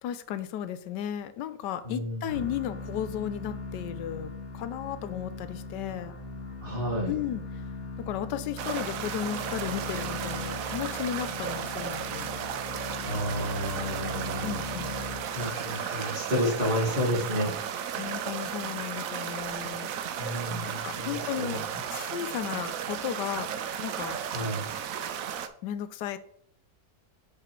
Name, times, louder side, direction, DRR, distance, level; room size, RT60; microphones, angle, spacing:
voice 1, 0.0-6.2 7.1-7.4 8.0-12.3 14.4-15.0 18.0-19.9 20.8-23.5 23.8-24.2 25.6-26.2, left 10 dB, 85° left, 13 dB, 1.2 m, -34 dB
voice 2, 1.9-2.3 6.6-7.1 13.0-14.6 15.3-17.5 20.2-21.6 24.3-24.7, equal, 30° right, -2 dB, 2.1 m, -31 dB
sound 1, 2.3-15.7, left 2 dB, 60° left, 1.6 m, -39 dB
sound 2, 8.6-25.5, right 8 dB, 65° right, 0.9 m, -34 dB
6.6 x 5.0 x 4.5 m, 0.65 s
omnidirectional pair, 1.8 m